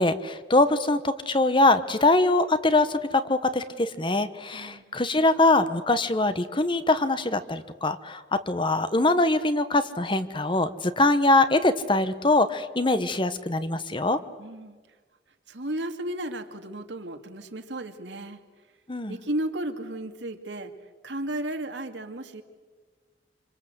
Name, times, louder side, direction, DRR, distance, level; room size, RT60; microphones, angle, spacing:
voice 1, 0.0-14.2 18.9-19.2, left 2 dB, 25° left, 12 dB, 1.1 m, -23 dB
voice 2, 4.5-4.8 14.4-14.8 15.5-18.4 19.1-20.7 21.0-22.4, right 1 dB, 75° right, 6 dB, 2.3 m, -34 dB
26.5 x 26.5 x 8.0 m, 1.4 s
head